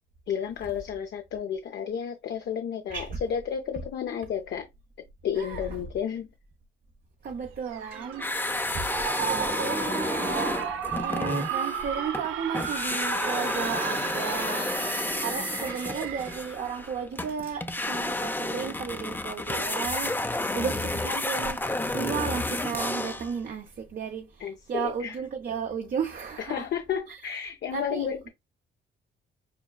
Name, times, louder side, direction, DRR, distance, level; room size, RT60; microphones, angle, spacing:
voice 1, 0.3-4.7 5.2-6.3 24.4-25.2 26.4-28.3, left 8 dB, 60° left, 0.6 m, -32 dB
voice 2, 7.2-10.7 11.0-20.2 20.5-26.6 27.1-27.2 27.7-28.1, right 6 dB, 50° right, 0.7 m, -34 dB
sound 1, 7.7-16.5, right 8 dB, 90° right, 0.7 m, -34 dB
sound 2, 8.2-12.3 12.5-23.3, left 2 dB, 10° left, 0.5 m, -31 dB
5.9 x 2.2 x 2.3 m
cardioid pair, 90°, 20 cm